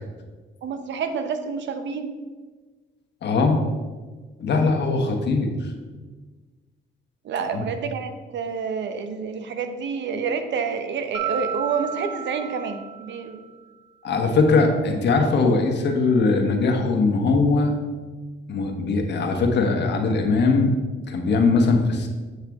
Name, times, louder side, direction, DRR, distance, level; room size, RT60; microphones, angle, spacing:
voice 1, 0.6-2.2 7.2-13.4, right 5 dB, 65° right, 8 dB, 0.8 m, -28 dB
voice 2, 3.2-3.6 4.4-5.7 7.5-7.6 14.0-17.7 18.5-20.7 21.1-22.1, left 3 dB, 60° left, 3 dB, 1.2 m, -20 dB
Mallet percussion, 11.1-13.5, right 8 dB, 75° left, 1.0 m, -32 dB
7.7 x 5.6 x 3.5 m, 1.4 s
cardioid pair, 90°, 20 cm